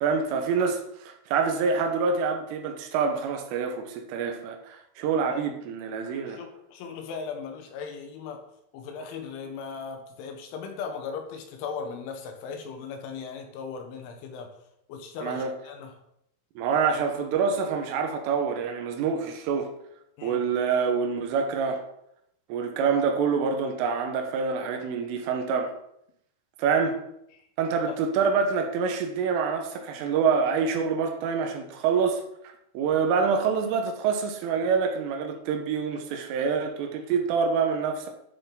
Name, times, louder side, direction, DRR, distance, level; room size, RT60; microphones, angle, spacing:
voice 1, 0.0-0.8 1.3-6.4 15.2-15.5 16.6-19.7 20.2-21.8 22.5-25.7 26.6-27.0 27.6-32.2 32.8-38.1, right 5 dB, 80° right, 4 dB, 3.7 m, -26 dB
voice 2, 6.3-8.4 8.7-14.5 14.9-16.0 20.2-20.5 27.9-28.0, left 5 dB, 80° left, 4 dB, 3.5 m, -38 dB
12.0 x 6.8 x 3.9 m, 0.77 s
omnidirectional pair, 5.7 m